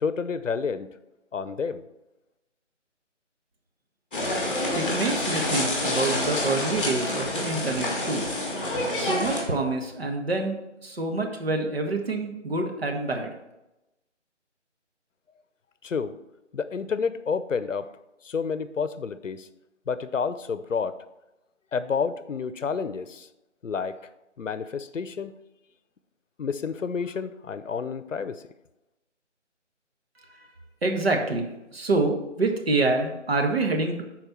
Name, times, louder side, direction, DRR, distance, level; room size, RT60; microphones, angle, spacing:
voice 1, 0.0-0.9 1.3-1.8 15.8-16.2 16.5-17.9 18.2-19.5 19.9-21.0 21.7-23.3 23.6-24.0 24.4-25.3 26.4-28.4, left 5 dB, 85° left, 13 dB, 0.8 m, -29 dB
sound 1, 4.1-9.4, left 1 dB, 10° left, 1.1 m, -27 dB
voice 2, 4.7-8.3 9.0-10.5 10.8-13.3 30.3-30.5 30.8-34.0, right 3 dB, 55° right, 3 dB, 1.6 m, -27 dB
11.0 x 4.5 x 4.4 m, 0.95 s
figure-of-eight pair, 170°, 37 cm